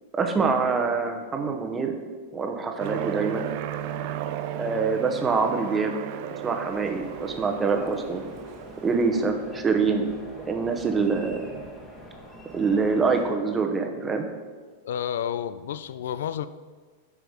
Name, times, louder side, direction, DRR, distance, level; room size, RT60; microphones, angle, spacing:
voice 1, 0.1-1.9 2.3-3.5 4.5-6.0 6.3-8.2 8.8-10.1 10.5-11.7 12.5-14.3, right 4 dB, 15° right, 4 dB, 0.9 m, -25 dB
Aircraft, 2.8-9.3, right 10 dB, 55° right, 0.5 m, -35 dB
sound 1, 6.7-13.3, equal, 10° left, 1.4 m, -45 dB
voice 2, 14.8-16.5, left 9 dB, 80° left, 14 dB, 0.3 m, -30 dB
8.0 x 4.9 x 5.1 m, 1.4 s
hypercardioid pair, 130°, 0 cm